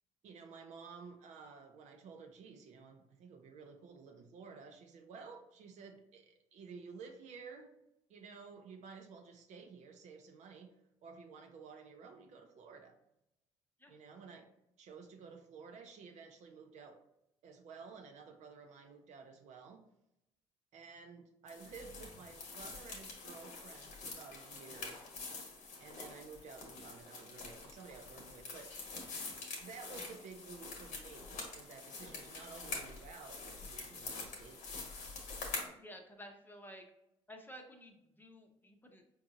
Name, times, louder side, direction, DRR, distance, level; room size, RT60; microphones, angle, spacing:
voice 1, 0.2-7.7 8.1-10.7 11.0-13.0 13.9-14.5 14.8-17.0 17.4-19.8 20.7-25.0 25.8-28.9 29.6-34.6, right 5 dB, 60° right, 4 dB, 0.7 m, -53 dB
sound 1, 21.5-35.7, left 3 dB, 70° left, 1.1 m, -46 dB
voice 2, 35.7-36.9 37.3-39.1, equal, 15° left, 3 dB, 0.8 m, -53 dB
4.7 x 2.7 x 2.5 m, 0.83 s
hypercardioid pair, 60°, 13 cm